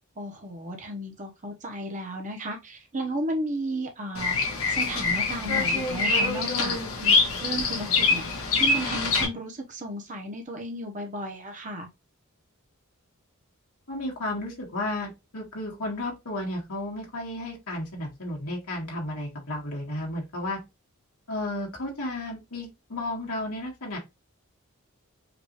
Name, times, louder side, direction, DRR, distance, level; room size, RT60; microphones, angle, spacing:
voice 1, 0.2-11.9, right 1 dB, 35° right, 1.1 m, -34 dB
Bird vocalization bird call bird song, 4.1-9.2, left 4 dB, 75° left, 1.4 m, -24 dB
voice 2, 13.9-20.6 21.3-24.0, left 1 dB, 90° left, 2.1 m, -33 dB
5.1 x 2.7 x 3.1 m
head